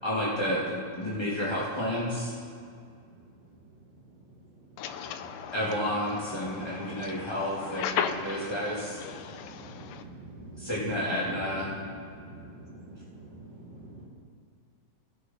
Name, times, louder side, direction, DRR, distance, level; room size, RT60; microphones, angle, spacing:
voice 1, 0.0-2.3 5.5-9.0 10.6-11.7, equal, 35° left, -7 dB, 0.4 m, -31 dB
voice 2, 4.8-5.5 6.4-7.1 7.8-8.5 9.1-9.4, left 8 dB, 85° left, 8 dB, 2.3 m, -33 dB
voice 3, 9.9-10.7 12.3-12.7 13.1-13.3 13.9-14.1, right 2 dB, 55° right, -3 dB, 2.4 m, -46 dB
17.5 x 6.9 x 4.1 m, 2.2 s
omnidirectional pair, 3.9 m